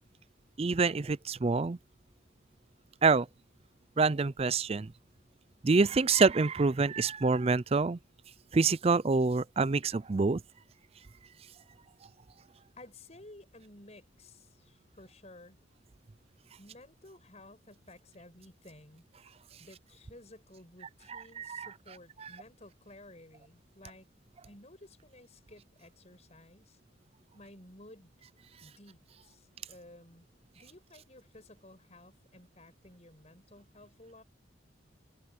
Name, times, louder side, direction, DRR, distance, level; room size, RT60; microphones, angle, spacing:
voice 1, 0.6-1.8 3.0-3.3 4.0-4.9 5.6-8.0 8.5-10.4 21.1-21.7 22.2-22.3, right 4 dB, 30° right, 0.4 m, -26 dB
voice 2, 12.8-15.6 16.6-19.0 19.6-24.1 24.5-26.8 27.3-28.1 28.6-30.3 30.5-34.2, left 1 dB, 35° left, 6.3 m, -54 dB
open air
head